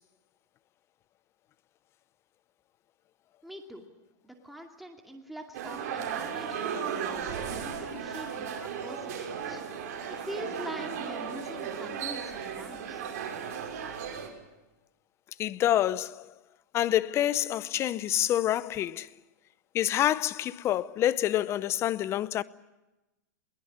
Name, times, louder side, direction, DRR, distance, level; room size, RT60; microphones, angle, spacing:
voice 1, 3.4-3.8 4.2-9.6 9.9-13.0, equal, ahead, 2.4 m, -44 dB
sound 1, 5.5-14.3, right 7 dB, 55° right, 5.8 m, -35 dB
voice 2, 15.4-16.3 16.7-19.1 19.7-22.4, left 12 dB, 25° left, 0.7 m, -27 dB
22.0 x 18.5 x 9.8 m
hypercardioid pair, 140°, 10 cm